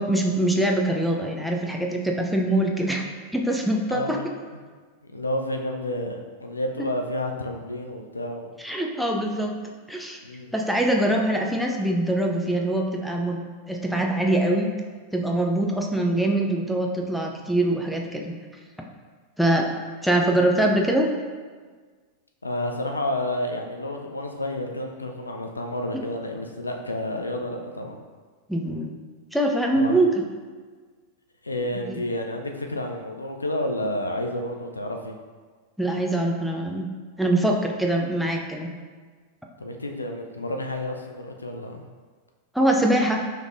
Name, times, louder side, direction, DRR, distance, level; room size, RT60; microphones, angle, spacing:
voice 1, 0.0-3.0 3.3-4.2 6.8-6.9 8.6-9.5 9.9-10.2 10.5-14.7 15.1-18.4 19.4-19.7 20.0-21.1 25.9-26.0 28.5-28.9 29.3-30.1 35.8-36.9 37.2-38.7 42.5-43.2, right 1 dB, ahead, 0 dB, 0.4 m, -23 dB
voice 2, 3.9-4.3 5.0-8.5 10.2-10.5 22.4-28.0 29.8-30.0 31.4-35.2 39.6-41.8, left 1 dB, 80° left, 3 dB, 0.3 m, -30 dB
5.1 x 3.1 x 2.5 m, 1.5 s
figure-of-eight pair, 90°, 0 cm